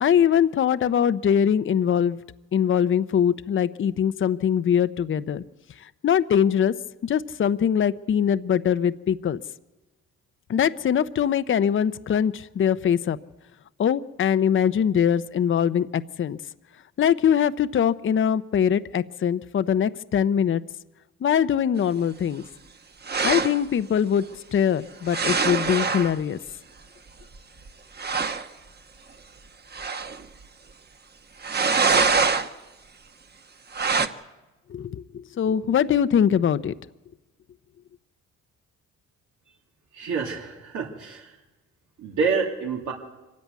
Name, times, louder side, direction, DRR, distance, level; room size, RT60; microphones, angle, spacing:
voice 1, 0.0-2.2 2.5-5.4 6.0-6.7 7.0-9.4 10.5-13.2 13.8-16.4 17.0-20.6 21.2-22.4 23.2-24.2 24.5-26.4 34.7-36.7, left 8 dB, 40° left, 13 dB, 0.7 m, -22 dB
sound 1, 23.1-23.6 25.1-26.1 27.3-27.4 27.7-27.8 28.0-28.5 29.7-30.2 31.4-32.5 33.7-34.1, right 4 dB, 35° right, 1.2 m, -23 dB
voice 2, 39.9-41.3 42.0-42.9, right 5 dB, 75° right, -1 dB, 2.7 m, -27 dB
24.5 x 14.0 x 9.4 m, 1.1 s
cardioid pair, 90°, 30 cm